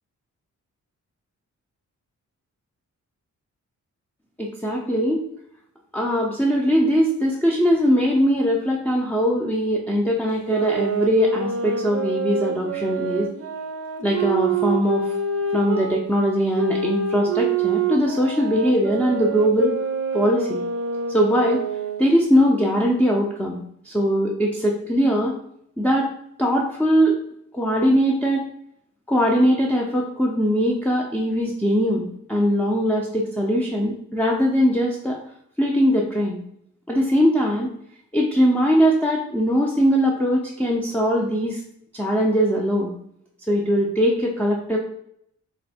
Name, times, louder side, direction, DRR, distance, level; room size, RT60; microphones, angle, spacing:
voice 1, 4.4-5.2 5.9-13.3 14.0-15.0 15.5-19.7 20.1-20.6 21.1-21.6 22.0-25.4 25.8-26.1 26.4-27.2 27.5-28.4 29.1-35.2 35.6-36.4 36.9-37.7 38.1-41.6 41.9-42.9 43.5-44.8, equal, 5° left, -4 dB, 0.5 m, -21 dB
sound 1, 10.3-16.0 16.5-22.1, right 5 dB, 50° right, 0.6 m, -26 dB
3.2 x 2.1 x 4.2 m, 0.70 s
cardioid pair, 95°, 31 cm